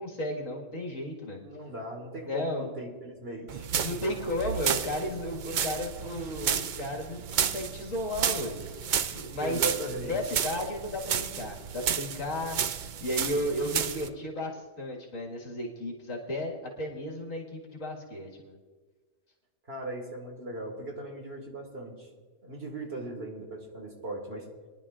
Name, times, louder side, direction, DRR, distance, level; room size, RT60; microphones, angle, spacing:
voice 1, 0.0-1.4 2.3-2.7 3.8-8.6 9.1-9.6 10.0-12.6 13.0-17.4 17.7-18.6, left 1 dB, 70° left, -1 dB, 2.2 m, -34 dB
voice 2, 1.4-4.1 9.4-10.2 19.7-22.1 22.4-24.5, right 1 dB, 45° right, 1 dB, 2.0 m, -38 dB
sound 1, 3.5-14.1, right 8 dB, 80° right, 0.4 m, -32 dB
22.5 x 10.5 x 2.5 m, 1.4 s
omnidirectional pair, 1.4 m